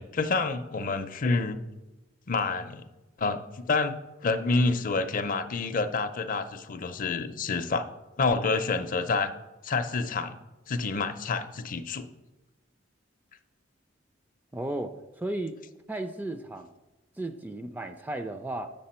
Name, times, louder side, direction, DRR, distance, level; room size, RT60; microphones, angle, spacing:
voice 1, 0.0-1.6 2.3-2.8 3.2-4.0 4.2-7.9 8.2-9.3 9.6-10.4 10.7-12.1, left 3 dB, 45° left, 10 dB, 0.5 m, -28 dB
voice 2, 14.5-15.6 15.9-16.7 17.2-18.7, right 1 dB, 10° right, 8 dB, 0.3 m, -34 dB
7.9 x 6.8 x 4.3 m, 1.1 s
head